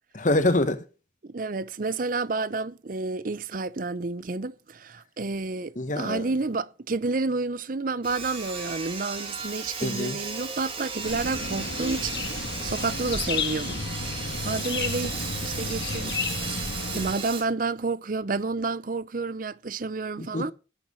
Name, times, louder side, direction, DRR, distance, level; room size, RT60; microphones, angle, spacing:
voice 1, 0.1-0.8 5.7-6.3 9.8-10.2 12.6-12.7 20.2-20.5, left 2 dB, 45° left, 1.3 m, -26 dB
voice 2, 1.2-13.8 14.4-16.2 16.9-20.5, right 3 dB, 50° right, 0.6 m, -30 dB
Sawing, 8.0-17.4, right 5 dB, 30° right, 2.5 m, -35 dB
sound 1, 11.0-17.1, left 4 dB, 65° left, 1.5 m, -32 dB
10.5 x 9.1 x 6.9 m
head